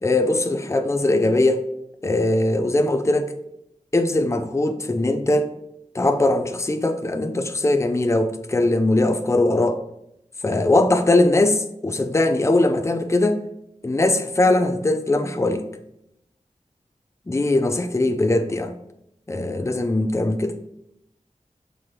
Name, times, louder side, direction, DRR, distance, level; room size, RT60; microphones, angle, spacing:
voice 1, 0.0-1.6 2.0-3.3 3.9-5.5 5.9-9.8 10.4-13.4 13.8-15.7 17.3-18.7 19.3-20.5, left 2 dB, 20° left, 8 dB, 0.5 m, -20 dB
6.2 x 4.8 x 3.7 m, 0.82 s
wide cardioid pair, 55°, 13 cm